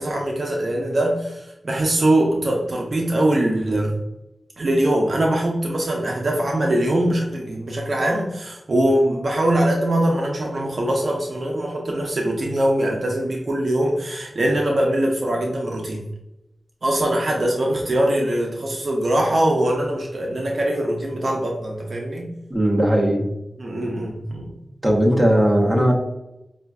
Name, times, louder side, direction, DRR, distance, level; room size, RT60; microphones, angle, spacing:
voice 1, 0.0-4.0 4.6-16.0 16.8-22.3 23.6-24.5, right 1 dB, 55° right, -1 dB, 0.7 m, -22 dB
voice 2, 22.5-23.3 24.8-25.9, equal, 15° right, -3 dB, 1.0 m, -18 dB
5.4 x 2.5 x 2.3 m, 0.90 s
wide cardioid pair, 100°, 0 cm